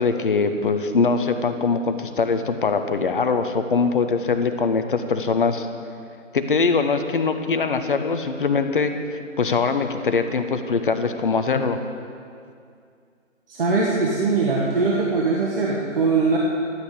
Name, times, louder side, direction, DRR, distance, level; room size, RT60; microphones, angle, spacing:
voice 1, 0.0-5.7 6.3-11.8, left 4 dB, 40° left, 8 dB, 0.9 m, -22 dB
voice 2, 13.5-16.4, right 4 dB, 45° right, -3 dB, 1.7 m, -21 dB
13.0 x 8.7 x 8.2 m, 2.3 s
figure-of-eight pair, 150°, 40 cm